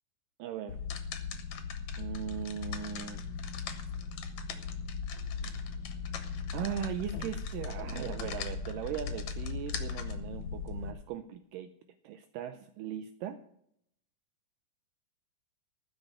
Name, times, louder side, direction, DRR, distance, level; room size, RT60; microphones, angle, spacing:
voice 1, 0.4-0.8 2.0-3.2 6.5-11.7 12.0-13.4, right 9 dB, 80° right, 9 dB, 2.2 m, -38 dB
sound 1, 0.7-10.9, left 5 dB, 60° left, 2.4 m, -38 dB
15.0 x 6.4 x 8.7 m, 0.72 s
omnidirectional pair, 4.1 m